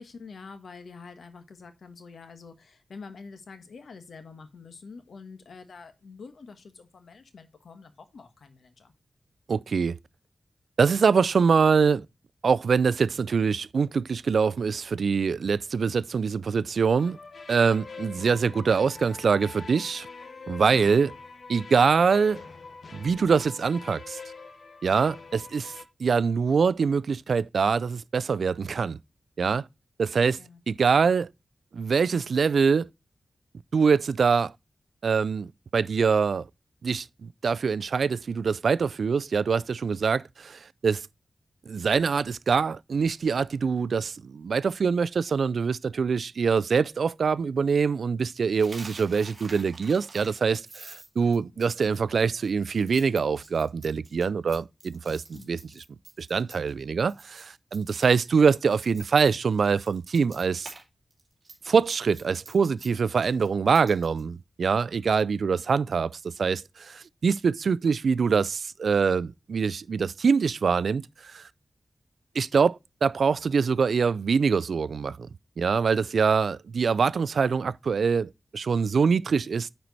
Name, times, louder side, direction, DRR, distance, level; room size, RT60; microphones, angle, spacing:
voice 1, 0.0-8.9 30.4-30.6 51.4-51.7 55.3-55.7 65.7-65.9, left 4 dB, 85° left, 1.2 m, -46 dB
voice 2, 9.5-10.0 10.8-12.0 12.4-17.2 17.5-20.1 20.5-21.1 21.5-22.4 22.9-24.2 24.8-25.7 26.0-29.0 29.4-29.7 30.0-30.4 30.7-31.3 31.7-32.9 33.7-34.5 35.0-36.5 36.8-41.0 41.7-55.8 56.2-60.7 61.7-71.5 72.4-75.3 75.6-79.7, right 5 dB, 80° right, 0.3 m, -24 dB
sound 1, 17.0-25.8, left 4 dB, 60° left, 1.0 m, -44 dB
Coin (dropping), 48.5-56.8 57.1-57.4 57.7-60.8 61.1-64.2, right 3 dB, 40° right, 2.5 m, -48 dB
9.4 x 4.4 x 4.0 m
wide cardioid pair, 115°, 0 cm